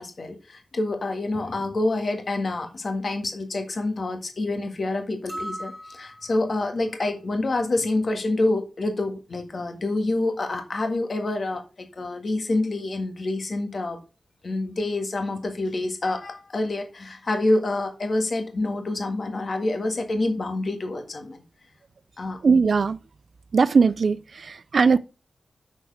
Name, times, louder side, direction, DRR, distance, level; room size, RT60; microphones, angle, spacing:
voice 1, 0.0-14.0 14.4-21.4 22.2-22.4, left 2 dB, 45° left, 1.6 m, -27 dB
sound 1, 5.3-6.6, right 1 dB, 5° right, 1.9 m, -37 dB
voice 2, 22.4-23.0 23.5-25.0, right 5 dB, 55° right, 0.4 m, -19 dB
6.8 x 6.2 x 6.2 m
wide cardioid pair, 170°, 0 cm